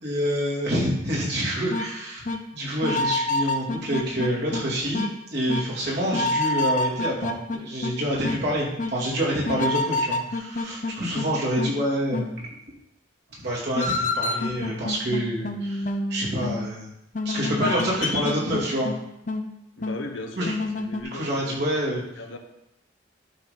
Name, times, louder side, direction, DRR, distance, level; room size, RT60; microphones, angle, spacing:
voice 1, 0.0-2.3 2.5-12.6 13.3-16.9 17.2-18.9 20.4-20.5 21.1-22.0, equal, 55° right, -5 dB, 2.9 m, -27 dB
sound 1, 1.7-1.9 2.3-2.4 2.8-4.6 4.9-5.1 5.5-5.6 6.1-7.9 8.2-8.4 8.8-8.9 9.5-11.3 11.6-11.7 12.1-12.3 13.8-16.7 17.1-19.0 19.3-19.5 19.8-20.0 20.5-21.0, left 2 dB, 40° left, 0.7 m, -27 dB
voice 2, 19.8-21.6 22.2-22.4, left 2 dB, 85° left, 5 dB, 1.1 m, -37 dB
11.5 x 4.1 x 5.3 m, 0.84 s
head